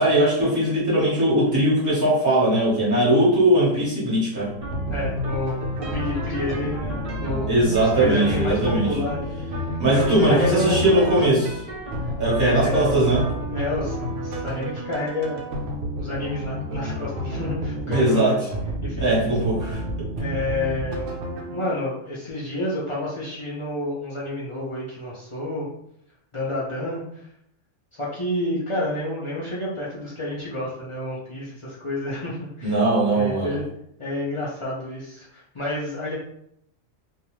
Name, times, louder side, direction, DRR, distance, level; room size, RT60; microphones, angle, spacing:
voice 1, 0.0-4.5 7.5-8.9 9.8-11.6 12.2-13.2 17.9-18.3 19.0-19.8 32.6-33.5, right 1 dB, 15° right, -8 dB, 1.1 m, -20 dB
sound 1, 4.4-21.6, right 1 dB, 50° right, 0.4 m, -40 dB
sound 2, 4.6-21.9, equal, 75° right, 0.9 m, -30 dB
voice 2, 4.9-7.5 7.8-11.2 12.3-15.4 16.0-18.4 18.8-19.0 20.2-21.2 21.5-25.7 26.3-27.0 27.9-32.7 33.1-33.6 34.0-36.1, left 1 dB, 50° left, -7 dB, 0.3 m, -29 dB
2.5 x 2.2 x 3.0 m, 0.73 s
omnidirectional pair, 1.3 m